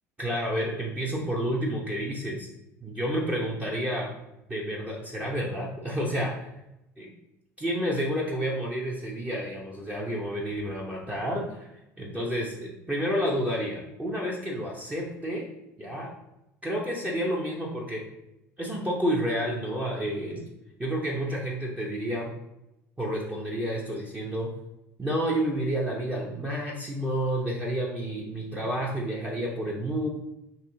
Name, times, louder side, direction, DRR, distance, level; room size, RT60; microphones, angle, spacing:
voice 1, 0.2-2.5 2.8-4.1 4.5-6.5 7.0-7.1 7.6-11.7 12.0-15.5 15.8-16.1 16.6-18.0 18.6-20.4 20.8-22.3 23.0-24.5 25.0-30.1, equal, 15° right, -4 dB, 0.9 m, -30 dB
4.2 x 2.7 x 3.9 m, 0.90 s
hypercardioid pair, 70°, 8 cm